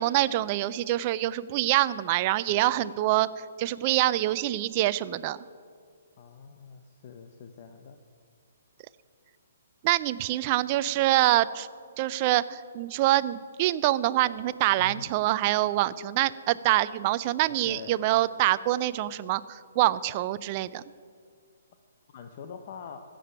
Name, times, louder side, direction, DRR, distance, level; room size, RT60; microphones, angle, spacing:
voice 1, 0.0-3.3 3.6-5.4 9.8-11.7 12.0-19.4 19.8-20.8, right 15 dB, 35° right, 17 dB, 0.5 m, -25 dB
voice 2, 2.5-2.9 6.2-8.0 14.8-15.1 17.6-18.0 22.1-23.0, left 6 dB, 45° left, 5 dB, 0.9 m, -44 dB
15.0 x 7.8 x 8.9 m, 2.1 s
hypercardioid pair, 140°, 0 cm